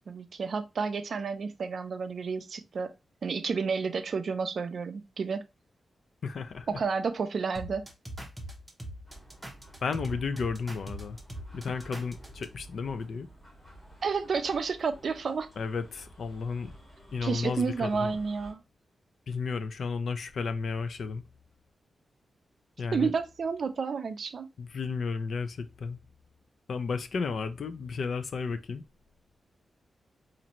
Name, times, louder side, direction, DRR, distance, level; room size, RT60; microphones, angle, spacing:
voice 1, 0.1-2.9 3.2-5.4 6.7-7.8 14.0-15.5 17.2-18.6 22.9-24.5, right 5 dB, 55° right, 0.4 m, -31 dB
voice 2, 6.2-6.8 9.8-11.2 11.5-13.3 15.6-16.7 17.1-18.2 19.3-21.2 22.8-23.1 24.6-26.0 26.7-28.8, left 5 dB, 60° left, 0.4 m, -33 dB
sound 1, 7.5-12.4, right 1 dB, 5° right, 0.7 m, -41 dB
sound 2, 9.1-18.5, right 1 dB, 15° left, 1.7 m, -53 dB
4.2 x 2.6 x 2.9 m
wide cardioid pair, 155°, 0 cm